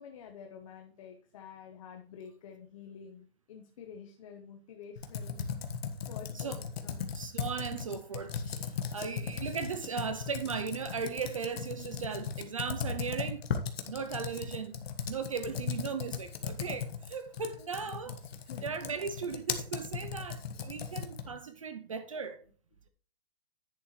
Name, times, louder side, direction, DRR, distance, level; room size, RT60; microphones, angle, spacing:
voice 1, 0.0-5.4 6.1-7.0 10.0-10.2 18.1-18.2 18.5-18.6 21.6-21.7, left 7 dB, 30° left, 0.9 m, -49 dB
Computer keyboard, 5.0-21.4, left 6 dB, 75° left, 1.5 m, -37 dB
voice 2, 7.1-13.5 13.9-14.7 15.1-18.2 18.6-22.4, right 6 dB, 35° right, 0.4 m, -37 dB
10.5 x 7.9 x 3.1 m
hypercardioid pair, 175°, 31 cm